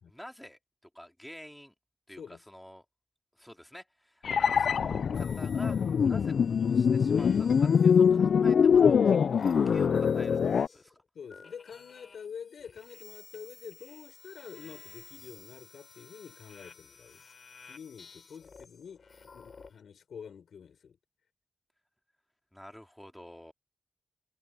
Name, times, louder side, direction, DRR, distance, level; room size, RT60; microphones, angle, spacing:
voice 1, 0.1-0.6 0.9-1.7 2.1-2.8 3.3-11.0 22.5-23.5, equal, 5° left, 2.6 m, -48 dB
sound 1, 4.2-10.7, left 7 dB, 70° left, 0.3 m, -23 dB
sound 2, 5.1-8.1 8.8-11.0 11.3-19.8, left 5 dB, 45° left, 5.9 m, -54 dB
voice 2, 11.1-17.2 17.7-21.0, left 7 dB, 90° left, 6.0 m, -47 dB
wide cardioid pair, 155°, 0 cm